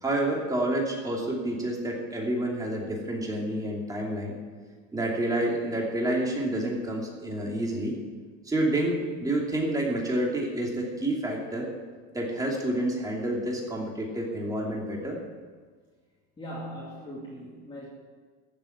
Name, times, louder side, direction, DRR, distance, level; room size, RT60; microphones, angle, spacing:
voice 1, 0.0-4.3 4.9-7.9 8.4-11.7 12.1-15.2, right 1 dB, 10° right, -1 dB, 2.7 m, -29 dB
voice 2, 16.4-17.9, equal, 15° left, -6 dB, 2.5 m, -39 dB
14.0 x 7.7 x 9.3 m, 1.5 s
cardioid pair, 150°, 34 cm